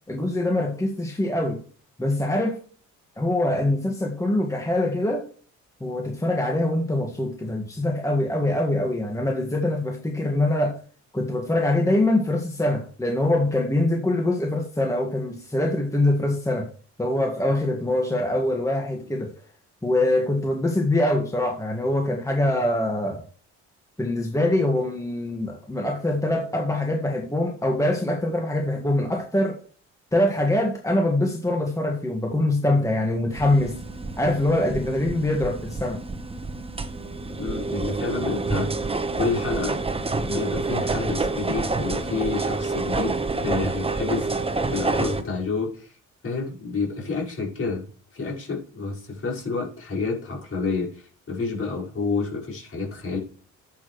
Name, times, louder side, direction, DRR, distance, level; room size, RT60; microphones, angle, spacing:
voice 1, 0.1-1.6 2.0-2.6 3.2-5.2 5.8-10.8 11.1-16.7 17.0-19.3 19.8-23.2 24.0-29.6 30.1-33.8 34.2-36.0, left 1 dB, 10° left, 1 dB, 1.8 m, -24 dB
sound 1, 33.3-45.2, right 3 dB, 20° right, 1.2 m, -28 dB
voice 2, 37.4-38.9 39.1-39.8 40.2-46.0 46.2-47.9 48.1-53.2, left 4 dB, 45° left, -3 dB, 5.3 m, -29 dB
11.5 x 8.4 x 3.2 m, 0.42 s
cardioid pair, 90°, 30 cm